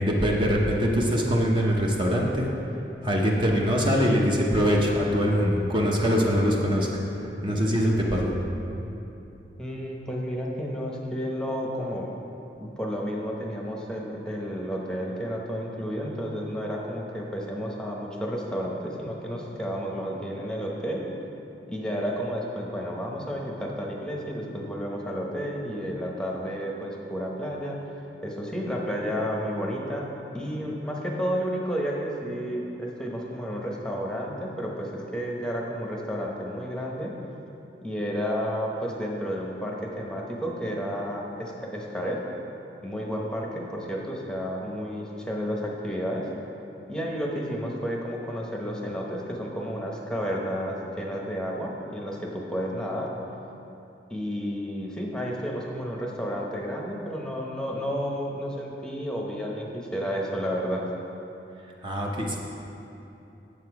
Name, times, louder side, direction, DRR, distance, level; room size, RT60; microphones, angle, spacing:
voice 1, 0.0-2.5 3.0-6.9 7.4-8.3 61.8-62.4, equal, 30° right, -2 dB, 0.8 m, -23 dB
voice 2, 9.6-12.1 12.6-21.0 21.7-27.8 28.2-30.1 30.3-37.1 37.8-42.2 42.8-46.3 46.9-53.1 54.1-60.9, equal, 5° left, -2 dB, 0.9 m, -31 dB
8.2 x 7.5 x 4.7 m, 3.0 s
head